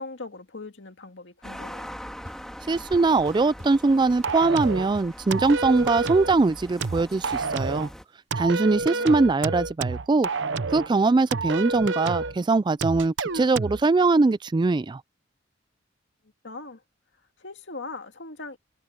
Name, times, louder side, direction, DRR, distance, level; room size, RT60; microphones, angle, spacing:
voice 1, 0.0-1.9 8.9-9.2 16.4-16.8 17.4-18.6, left 3 dB, 75° left, 2.2 m, -40 dB
sound 1, 1.4-8.0, equal, 5° left, 3.1 m, -42 dB
sound 2, 2.2-2.3 2.7-3.7 4.1-5.2 5.4-7.7, equal, 40° right, 3.3 m, -44 dB
voice 2, 2.7-7.9 8.4-10.3 10.7-15.0, right 3 dB, 25° right, 0.3 m, -22 dB
sound 3, 4.2-4.9 5.3-6.4 6.8-7.9 8.3-10.9 11.3-12.4 12.8-13.8, right 4 dB, 85° right, 0.8 m, -29 dB
head